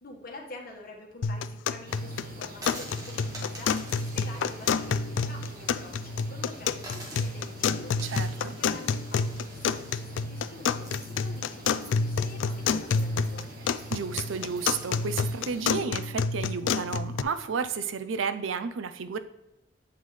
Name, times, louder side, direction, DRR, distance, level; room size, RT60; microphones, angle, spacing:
voice 1, 0.0-8.1 8.4-13.4, left 2 dB, 50° left, 1 dB, 1.4 m, -47 dB
sound 1, 1.2-17.2, left 5 dB, 75° left, 0.3 m, -29 dB
sound 2, 1.9-15.6, right 1 dB, 50° right, 1.0 m, -47 dB
sound 3, 2.5-5.9 6.3-6.4 6.8-15.2, right 1 dB, 20° right, 1.6 m, -47 dB
voice 2, 8.0-8.6 13.9-19.2, right 5 dB, 85° right, 11 dB, 0.5 m, -32 dB
7.8 x 5.4 x 3.2 m, 0.91 s
head